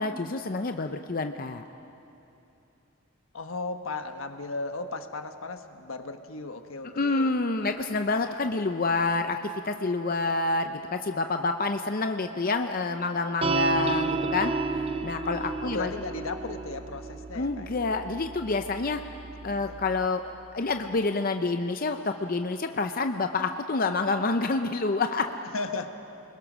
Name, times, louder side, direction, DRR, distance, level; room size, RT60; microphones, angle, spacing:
voice 1, 0.0-1.6 6.9-14.5 15.0-15.9 17.3-19.0 19.4-25.3, left 3 dB, 45° left, 6 dB, 0.6 m, -28 dB
voice 2, 3.3-7.4 15.6-17.7 19.4-19.8 25.4-25.9, left 3 dB, 80° left, 7 dB, 1.3 m, -36 dB
sound 1, 13.4-20.1, right 3 dB, 25° right, 0.5 m, -32 dB
29.5 x 21.0 x 6.2 m, 2.9 s
head